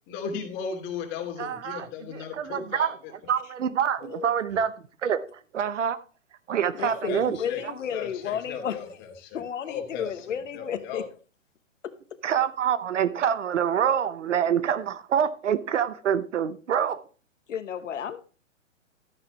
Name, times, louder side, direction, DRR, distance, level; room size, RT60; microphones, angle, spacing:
voice 1, 0.1-3.1 6.8-7.6 7.9-11.0, left 6 dB, 30° left, 2.8 m, -36 dB
voice 2, 1.4-2.9 3.3-6.0 6.5-7.4 7.6-7.7 12.2-17.0, right 8 dB, 70° right, 1.0 m, -26 dB
voice 3, 6.8-8.8 9.3-11.0 11.8-11.9 17.5-18.2, left 8 dB, 70° left, 1.1 m, -32 dB
12.5 x 9.7 x 3.1 m
hypercardioid pair, 125°, 38 cm